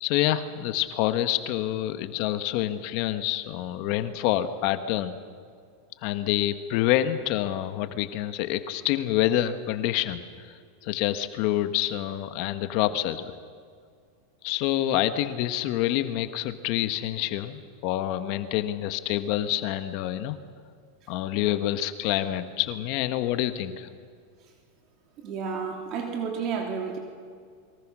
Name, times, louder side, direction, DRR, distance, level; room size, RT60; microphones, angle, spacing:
voice 1, 0.0-5.2 6.0-13.3 14.4-20.4 21.1-23.9, left 13 dB, 55° left, 9 dB, 1.5 m, -27 dB
voice 2, 25.2-27.0, right 6 dB, 45° right, 2 dB, 3.2 m, -31 dB
28.0 x 23.5 x 6.3 m, 2.1 s
hypercardioid pair, 120°, 0 cm